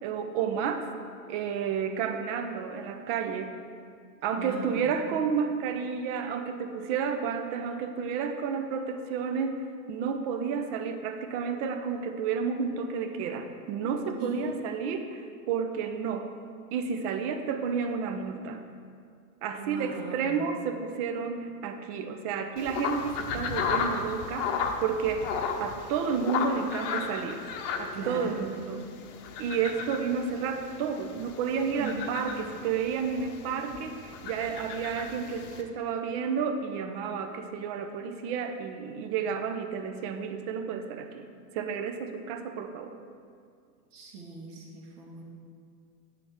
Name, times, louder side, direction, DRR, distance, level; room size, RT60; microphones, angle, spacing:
voice 1, 0.0-0.9 1.3-3.6 4.2-16.3 16.7-18.7 19.4-27.4 27.8-28.9 29.4-41.3 41.5-43.0, right 6 dB, 50° right, 7 dB, 0.8 m, -31 dB
voice 2, 4.4-5.0 14.2-14.6 19.6-20.5 27.9-28.4 31.8-32.0 43.9-45.2, right 3 dB, 70° right, -2 dB, 2.0 m, -39 dB
sound 1, 22.6-35.6, left 6 dB, 50° left, 0.9 m, -35 dB
8.6 x 6.9 x 3.6 m, 2.2 s
hypercardioid pair, 120°, 47 cm